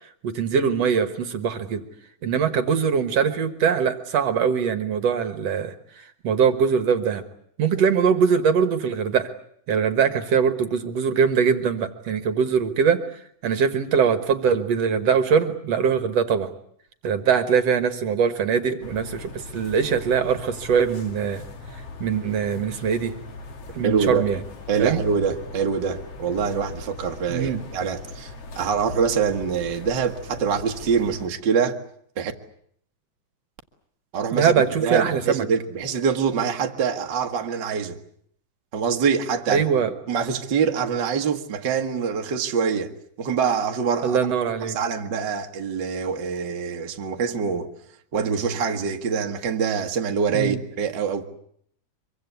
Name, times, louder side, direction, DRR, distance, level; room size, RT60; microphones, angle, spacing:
voice 1, 0.2-1.8 2.2-7.2 7.6-9.3 9.7-13.0 13.4-16.5 17.0-21.4 22.0-23.2 23.7-24.4 24.8-25.0 27.3-27.6 34.3-35.4 39.5-39.9 44.0-44.8 50.3-50.6, right 6 dB, 60° right, 2.3 m, -22 dB
sound 1, 18.8-31.3, left 3 dB, 50° left, 3.1 m, -40 dB
voice 2, 23.8-24.3 24.7-31.8 32.2-32.3 34.1-34.5 34.8-38.0 38.7-39.6 40.1-42.9 43.2-44.2 44.6-47.7 48.1-51.2, right 6 dB, 45° right, 1.7 m, -25 dB
25.0 x 24.0 x 8.3 m
omnidirectional pair, 3.6 m